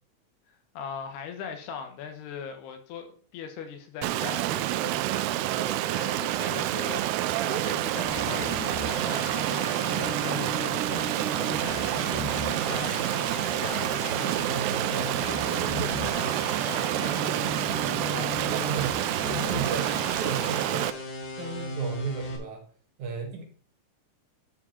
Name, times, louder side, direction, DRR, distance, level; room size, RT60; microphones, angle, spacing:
voice 1, 0.7-18.3, left 7 dB, 80° left, 3.4 m, -41 dB
Stream, 4.0-20.9, right 14 dB, 85° right, 2.6 m, -28 dB
sound 1, 8.0-22.4, left 2 dB, 55° left, 2.9 m, -36 dB
voice 2, 18.5-19.0 19.4-21.0 21.4-22.6 23.0-23.4, right 6 dB, 60° right, 2.4 m, -34 dB
11.5 x 4.8 x 4.4 m
omnidirectional pair, 4.6 m